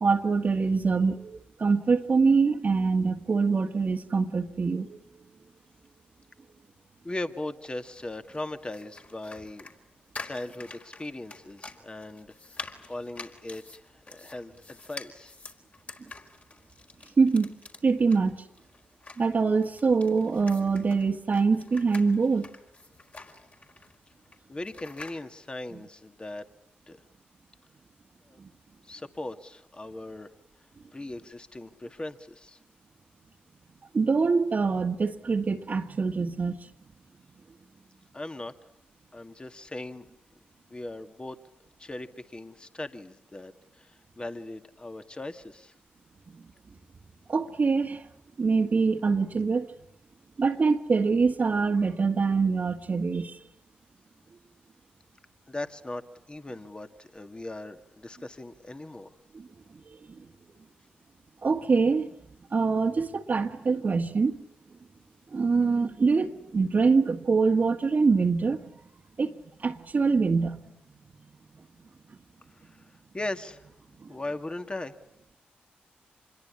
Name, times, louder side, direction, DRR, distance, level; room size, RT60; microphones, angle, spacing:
voice 1, 0.0-5.0 17.2-17.5 17.8-18.3 19.2-22.5 28.4-28.5 33.9-36.6 46.3-46.4 47.3-48.0 48.4-49.7 50.4-53.4 59.3-59.5 59.9-60.0 61.4-62.1 62.5-64.4 65.3-68.6 69.2-70.6 74.0-74.1, right 4 dB, 50° right, 1.8 m, -24 dB
voice 2, 7.0-9.7 10.2-12.3 12.9-15.3 24.5-26.5 26.9-27.0 28.3-28.4 28.8-30.3 30.9-32.6 38.1-38.5 39.1-40.1 40.7-41.4 41.8-45.7 55.5-56.0 56.3-59.1 72.5-73.7 74.1-74.9, left 2 dB, 25° left, 2.1 m, -39 dB
sound 1, 7.7-25.2, left 3 dB, 40° left, 4.7 m, -47 dB
26.0 x 22.0 x 9.9 m
supercardioid pair, 50°, 4 cm